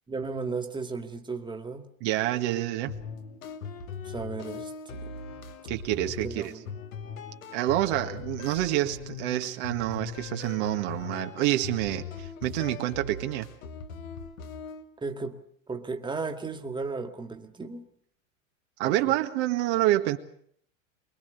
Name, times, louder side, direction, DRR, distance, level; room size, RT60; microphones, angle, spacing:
voice 1, 0.1-1.9 4.0-5.1 6.2-6.7 15.0-15.4 15.7-17.9 18.8-18.9, right 4 dB, 10° right, 6 dB, 2.2 m, -35 dB
voice 2, 2.0-2.9 5.7-6.5 7.5-13.5 18.8-20.2, right 15 dB, 55° right, 6 dB, 1.8 m, -27 dB
sound 1, 2.9-14.8, left 5 dB, 75° left, 2.7 m, -40 dB
24.5 x 21.5 x 6.9 m, 0.64 s
hypercardioid pair, 100°, 40 cm